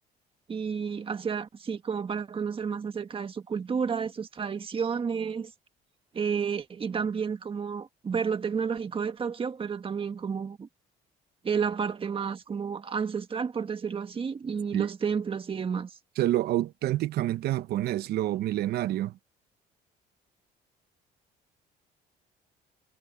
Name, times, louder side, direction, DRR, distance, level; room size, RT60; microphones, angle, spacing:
voice 1, 0.5-5.5 6.1-10.7 11.4-15.9, right 6 dB, 30° right, 1.7 m, -31 dB
voice 2, 16.2-19.2, right 14 dB, 70° right, 0.9 m, -28 dB
cardioid pair, 110°, 17 cm